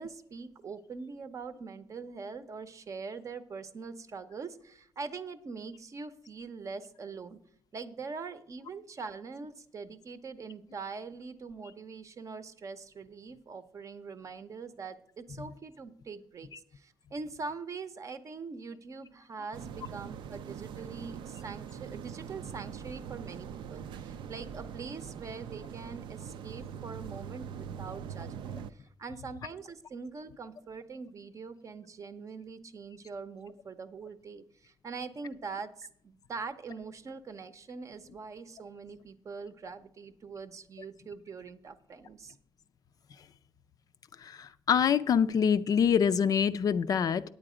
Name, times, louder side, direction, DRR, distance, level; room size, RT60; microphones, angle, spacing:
voice 1, 0.0-7.4 7.7-42.4, right 4 dB, 40° right, 11 dB, 0.7 m, -43 dB
sound 1, 19.5-28.7, right 8 dB, 70° right, 0.5 m, -42 dB
voice 2, 44.2-47.2, left 7 dB, 45° left, 13 dB, 0.4 m, -25 dB
9.2 x 8.7 x 4.9 m, 0.64 s
cardioid pair, 135°, 8 cm